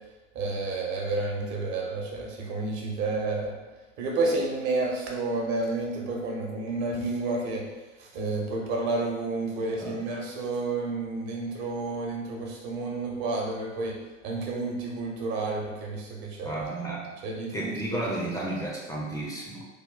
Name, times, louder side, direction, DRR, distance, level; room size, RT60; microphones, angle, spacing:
voice 1, 0.3-3.5 4.0-7.6 8.0-14.0 14.2-16.6 17.2-18.0, right 3 dB, 45° right, -1 dB, 1.0 m, -30 dB
voice 2, 16.4-17.1 17.5-19.7, right 1 dB, 10° left, -5 dB, 0.6 m, -33 dB
3.4 x 2.3 x 3.8 m, 1.2 s
figure-of-eight pair, 80°, 39 cm